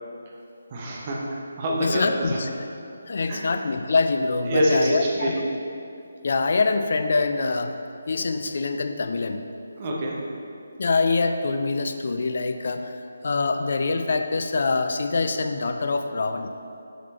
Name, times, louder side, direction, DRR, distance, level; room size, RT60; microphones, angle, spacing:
voice 1, 0.7-2.4 3.3-3.4 4.5-5.4 9.8-10.3, equal, 30° right, -3 dB, 1.0 m, -26 dB
voice 2, 1.8-2.5 3.1-5.3 6.2-7.7 8.1-9.4 10.8-16.5, left 3 dB, 50° left, 7 dB, 0.4 m, -24 dB
7.2 x 4.3 x 4.2 m, 2.7 s
figure-of-eight pair, 150°, 0 cm